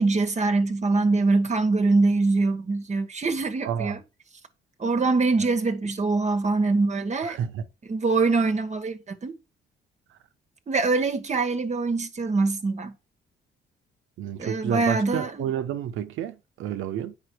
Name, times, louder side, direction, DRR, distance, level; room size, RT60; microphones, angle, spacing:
voice 1, 0.0-4.0 4.8-7.4 7.9-9.3 10.7-12.9 14.4-15.5, right 3 dB, 35° right, 1.3 m, -23 dB
voice 2, 3.6-3.9 7.2-7.7 14.2-17.2, right 9 dB, 85° right, 1.0 m, -30 dB
8.5 x 5.6 x 4.6 m
cardioid pair, 90°, 20 cm